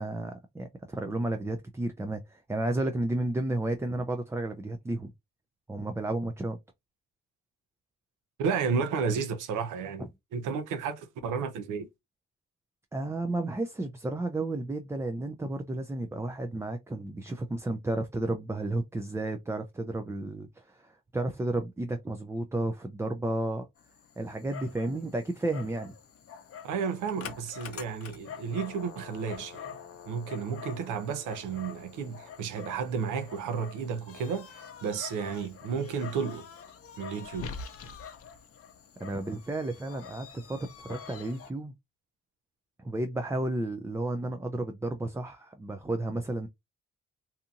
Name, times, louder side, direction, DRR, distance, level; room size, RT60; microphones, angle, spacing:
voice 1, 0.0-5.1 5.7-6.6 12.9-23.7 24.2-25.9 39.0-41.7 42.8-46.5, right 2 dB, 10° right, 0.3 m, -32 dB
voice 2, 8.4-11.9 26.6-29.8 30.1-36.5 37.0-37.5, right 6 dB, 85° right, 0.7 m, -32 dB
Dog, 23.8-41.5, left 7 dB, 50° left, 0.7 m, -46 dB
2.8 x 2.5 x 2.4 m
cardioid pair, 90°, 30 cm